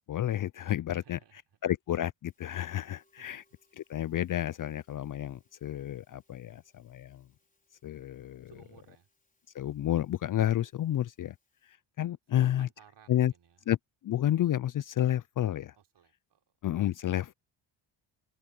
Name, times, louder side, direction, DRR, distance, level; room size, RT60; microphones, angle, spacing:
voice 1, 0.1-1.2 1.6-3.4 3.8-7.3 7.8-8.5 9.5-11.3 11.6-12.7 13.1-13.3 13.7-13.8 14.0-15.7 16.6-17.3, left 12 dB, 45° left, 0.4 m, -30 dB
voice 2, 0.9-1.4 3.2-3.3 8.5-9.1 12.3-13.6 15.7-16.4, right 8 dB, 60° right, 3.6 m, -58 dB
Musical instrument, 2.3-11.7, left 2 dB, 15° left, 5.4 m, -73 dB
cardioid pair, 105°, 47 cm